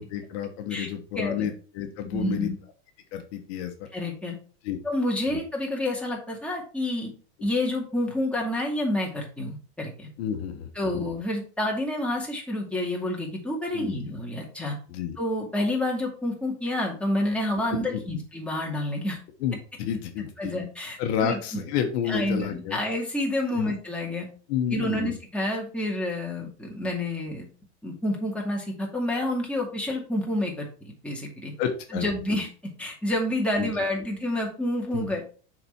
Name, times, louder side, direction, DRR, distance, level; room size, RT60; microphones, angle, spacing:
voice 1, 0.0-2.5 3.1-3.7 4.6-4.8 5.3-5.4 10.2-11.1 13.7-14.0 14.9-15.2 17.9-18.0 19.4-20.6 21.0-22.8 23.5-23.7 24.5-25.1 31.6-32.1 33.6-33.7 34.9-35.1, left 9 dB, 65° left, 6 dB, 1.2 m, -30 dB
voice 2, 1.2-1.5 2.1-2.6 3.9-4.4 4.8-7.1 7.4-10.1 10.8-14.7 15.2-19.2 20.4-21.6 22.1-24.3 24.7-27.5 27.8-30.6 31.0-31.5 31.9-32.5 32.8-35.2, left 1 dB, 5° left, -2 dB, 2.2 m, -29 dB
6.7 x 4.3 x 4.5 m, 0.39 s
supercardioid pair, 120°, 34 cm